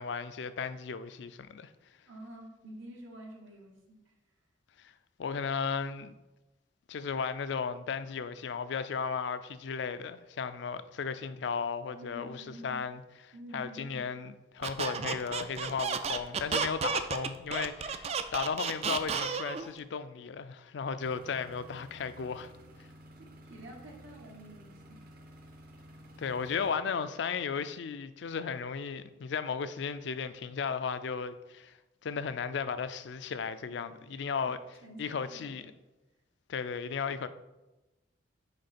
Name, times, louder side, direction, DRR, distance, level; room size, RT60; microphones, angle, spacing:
voice 1, 0.0-1.7 4.8-4.9 5.2-6.2 6.9-13.0 13.5-22.5 26.2-31.8 32.0-34.6 35.0-35.6 36.5-37.3, left 6 dB, 60° left, 0.4 m, -35 dB
voice 2, 2.1-4.1 11.9-12.8 13.3-14.0 23.4-25.2 33.7-34.1 34.4-34.5 34.8-35.7, right 1 dB, 75° right, 1.2 m, -49 dB
Squeak, 14.6-19.7, right 6 dB, 30° right, 0.3 m, -32 dB
sound 1, 21.0-26.7, equal, 45° right, 0.8 m, -53 dB
6.5 x 4.8 x 4.2 m
head